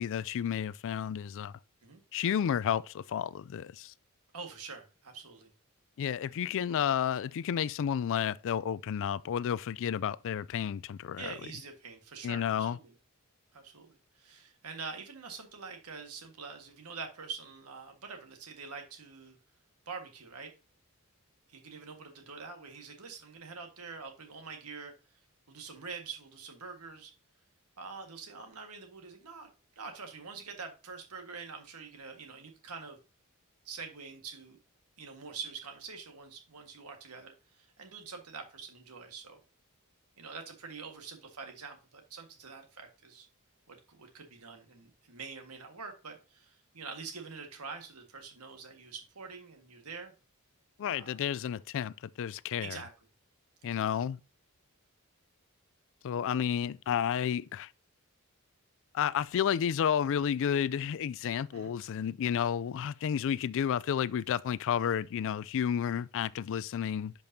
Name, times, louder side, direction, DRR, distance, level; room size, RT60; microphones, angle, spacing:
voice 1, 0.0-1.5 2.1-3.9 6.0-11.3 12.2-12.8 50.8-52.8 53.6-54.2 56.0-57.7 58.9-67.1, left 8 dB, 60° left, 0.3 m, -31 dB
voice 2, 4.3-5.5 11.2-12.9 13.5-19.4 19.8-20.5 21.5-24.9 25.5-27.1 27.8-29.5 29.7-33.0 33.6-34.6 35.0-39.4 40.2-43.3 43.7-50.1 50.8-51.2 52.6-52.9 53.6-53.9 61.5-61.7, right 5 dB, 90° right, 1.6 m, -45 dB
10.5 x 5.2 x 2.7 m
head